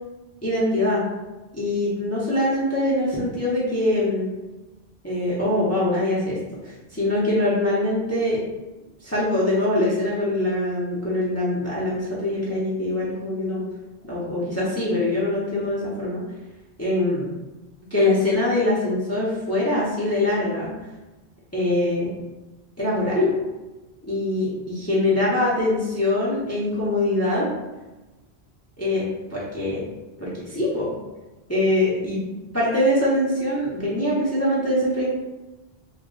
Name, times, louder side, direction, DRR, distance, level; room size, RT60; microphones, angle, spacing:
voice 1, 0.4-1.0 1.5-4.3 5.0-8.4 9.0-13.6 14.1-16.2 16.8-17.3 17.9-20.8 21.5-22.1 22.8-23.4 24.1-27.5 28.8-29.0 29.3-29.8 30.2-31.0 31.5-35.1, left 1 dB, 15° left, -8 dB, 0.7 m, -23 dB
2.9 x 2.3 x 3.8 m, 1.1 s
omnidirectional pair, 1.1 m